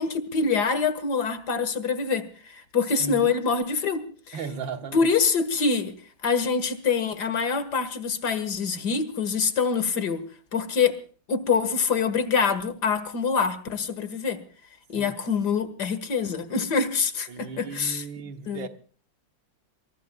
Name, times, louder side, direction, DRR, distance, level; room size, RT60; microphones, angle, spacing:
voice 1, 0.0-4.4 4.9-5.9 6.2-10.2 10.5-11.0 11.3-14.4 14.9-18.0 18.5-18.7, left 5 dB, 60° left, 2.2 m, -25 dB
voice 2, 3.0-3.3 4.3-5.1 14.9-15.2 17.3-18.7, right 6 dB, 85° right, 1.9 m, -36 dB
24.5 x 23.0 x 2.3 m
omnidirectional pair, 2.0 m